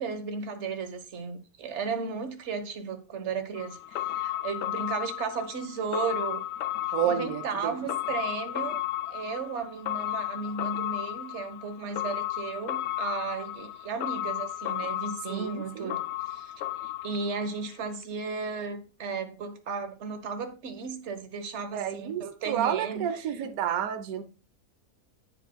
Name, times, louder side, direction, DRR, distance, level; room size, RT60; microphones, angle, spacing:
voice 1, 0.0-6.4 7.0-8.8 9.1-16.5 16.8-23.2, right 5 dB, 50° right, 1.4 m, -35 dB
sound 1, 3.5-17.7 18.0-18.1, left 13 dB, 75° left, 0.6 m, -34 dB
voice 2, 6.9-7.8 15.3-16.0 21.7-24.2, right 9 dB, 70° right, 1.2 m, -30 dB
9.6 x 8.1 x 2.2 m
omnidirectional pair, 1.6 m